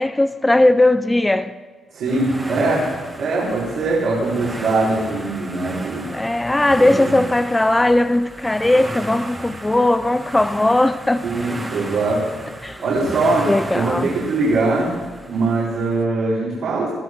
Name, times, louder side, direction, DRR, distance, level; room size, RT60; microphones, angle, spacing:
voice 1, 0.0-1.5 6.1-11.2 12.6-13.1 13.5-14.1, left 1 dB, 15° left, 0.6 m, -18 dB
voice 2, 1.9-2.8 3.2-6.1 6.8-7.1 11.2-12.2 12.8-13.5 13.7-14.9 15.3-16.9, right 3 dB, 80° right, 4.6 m, -21 dB
sound 1, 2.0-16.0, right 1 dB, 20° right, 2.0 m, -34 dB
21.0 x 12.0 x 4.6 m
cardioid pair, 80°, 0 cm